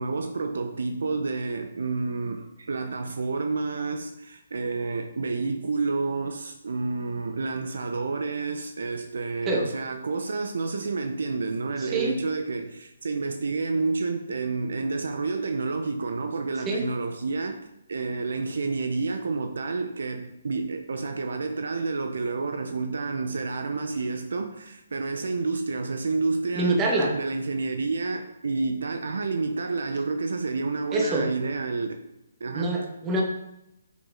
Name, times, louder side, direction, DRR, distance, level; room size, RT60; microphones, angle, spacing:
voice 1, 0.0-17.6 17.9-32.0 32.4-32.7, right 3 dB, 65° right, 0.8 m, -29 dB
voice 2, 11.8-12.1 16.7-16.9 26.5-27.1 30.9-31.3 32.5-33.2, right 2 dB, 20° right, 1.9 m, -25 dB
8.6 x 7.2 x 3.9 m
figure-of-eight pair, 135°, 0 cm